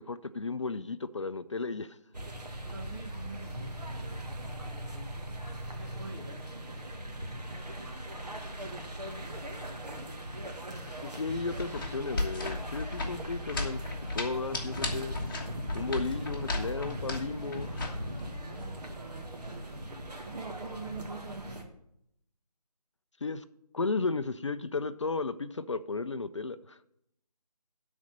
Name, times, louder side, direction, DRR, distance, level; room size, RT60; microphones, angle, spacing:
voice 1, 0.0-2.0 11.0-15.2 15.7-18.0 23.2-23.4 23.7-26.8, left 3 dB, 50° left, 13 dB, 0.4 m, -34 dB
sound 1, 2.1-21.6, right 1 dB, 85° right, 1.8 m, -40 dB
voice 2, 2.6-7.4 7.7-8.6 18.3-19.3 20.2-21.8, right 3 dB, 40° right, 2 dB, 0.9 m, -47 dB
sound 2, 11.3-18.7, left 2 dB, 30° left, 1.4 m, -36 dB
11.5 x 4.2 x 7.3 m, 0.77 s
figure-of-eight pair, 165°, 20 cm